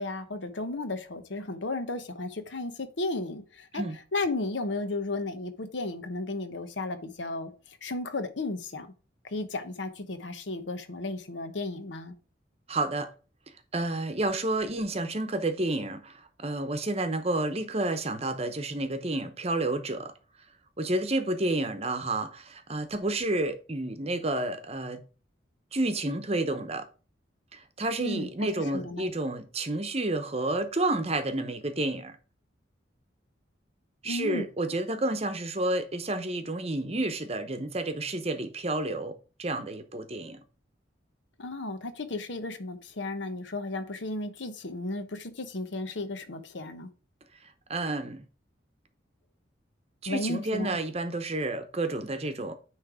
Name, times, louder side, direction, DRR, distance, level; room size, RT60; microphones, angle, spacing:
voice 1, 0.0-3.8 4.1-7.5 7.8-8.9 9.3-12.1 28.0-29.1 34.0-34.4 41.4-46.9 50.1-50.8, left 2 dB, 75° left, 1.0 m, -34 dB
voice 2, 12.7-13.1 13.7-20.1 20.8-25.0 25.7-26.9 27.5-32.2 34.0-40.4 47.7-48.2 50.0-52.5, right 2 dB, 35° right, 0.8 m, -30 dB
9.6 x 3.3 x 4.9 m
head